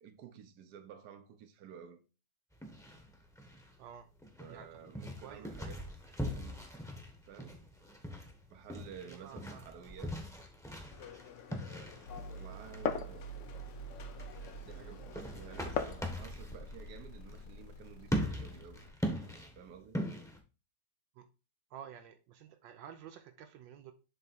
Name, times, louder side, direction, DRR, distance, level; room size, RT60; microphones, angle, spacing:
voice 1, 0.0-2.0 4.4-5.9 6.3-6.6 7.3-7.6 8.5-10.4 12.3-13.3 14.7-18.8 19.5-20.0, right 8 dB, 65° right, 1.4 m, -52 dB
sound 1, 2.5-20.4, equal, ahead, 0.9 m, -42 dB
voice 2, 5.2-5.6 9.0-10.0 21.2-21.3 21.7-23.9, right 9 dB, 80° right, 1.4 m, -51 dB
Glass, 10.9-16.1, left 7 dB, 60° left, 0.8 m, -42 dB
sound 2, 12.1-18.9, right 3 dB, 75° left, 2.5 m, -48 dB
7.6 x 3.6 x 4.1 m
omnidirectional pair, 2.0 m